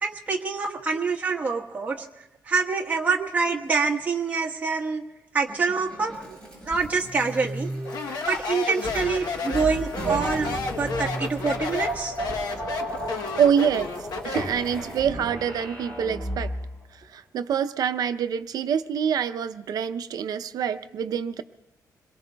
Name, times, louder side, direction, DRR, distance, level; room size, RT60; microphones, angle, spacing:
voice 1, 0.0-2.1 2.5-5.0 5.3-6.1 6.7-7.7 8.3-12.1, right 4 dB, 20° right, -2 dB, 1.3 m, -26 dB
sound 1, 5.5-16.7, equal, 15° left, 6.6 m, -34 dB
Speech, 7.9-14.6, left 4 dB, 70° left, 1.0 m, -32 dB
voice 2, 13.4-13.9 14.2-16.5 16.9-21.4, right 8 dB, 70° right, 9 dB, 0.6 m, -26 dB
27.0 x 22.0 x 2.3 m, 1.0 s
wide cardioid pair, 170°, 7 cm